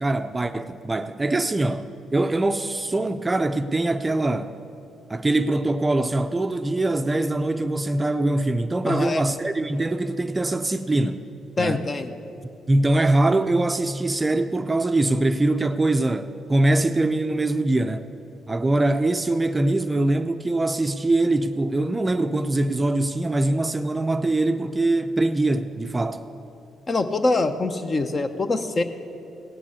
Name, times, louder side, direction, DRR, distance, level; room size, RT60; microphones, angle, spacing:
voice 1, 0.0-4.5 5.1-11.2 11.6-11.8 12.7-18.0 18.5-26.2, right 2 dB, 20° right, 0.5 m, -23 dB
voice 2, 8.9-9.2 11.6-12.1 26.9-28.8, left 3 dB, 35° left, 0.8 m, -24 dB
16.5 x 5.9 x 9.5 m
cardioid pair, 90°, 0 cm